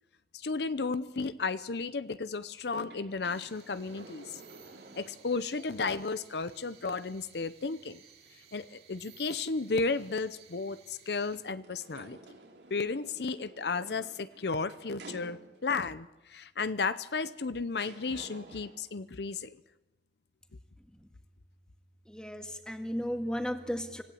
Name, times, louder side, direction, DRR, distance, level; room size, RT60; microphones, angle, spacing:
voice 1, 0.3-4.4 5.0-8.0 8.5-12.2 12.7-19.6, left 4 dB, 70° left, 14 dB, 0.7 m, -33 dB
sound 1, 2.7-5.6 6.0-6.1 11.5-15.8 16.9-17.0 17.7-18.9, right 2 dB, 85° right, 3.8 m, -52 dB
sound 2, 3.3-11.4, right 8 dB, 60° right, 3.5 m, -58 dB
voice 2, 22.0-24.0, equal, 5° left, 5 dB, 1.8 m, -35 dB
26.0 x 16.5 x 8.5 m, 0.99 s
head